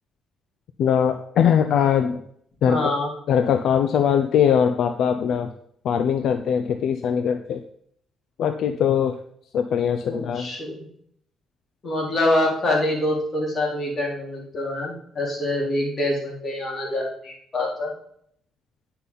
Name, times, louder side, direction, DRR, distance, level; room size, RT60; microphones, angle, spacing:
voice 1, 0.8-2.2 2.6-2.9 3.3-5.5 5.8-7.6 8.4-9.2 9.5-10.5, left 8 dB, 75° left, 8 dB, 0.5 m, -21 dB
voice 2, 2.6-3.1 10.0-10.8 11.8-17.9, left 1 dB, 40° left, -3 dB, 3.9 m, -25 dB
9.8 x 5.8 x 4.0 m, 0.66 s
cardioid pair, 90°, 0 cm